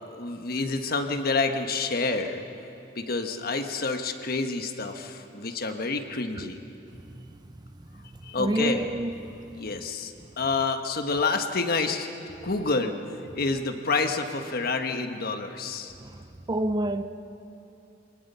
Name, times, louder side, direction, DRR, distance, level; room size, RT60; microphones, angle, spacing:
voice 1, 0.1-2.4 2.9-6.6 8.2-8.8 9.5-12.1 12.4-13.0 13.3-15.9, left 3 dB, 55° left, 1.3 m, -28 dB
voice 2, 8.4-9.3 16.0-17.0, right 1 dB, 20° right, 0.5 m, -29 dB
26.0 x 19.0 x 5.6 m
head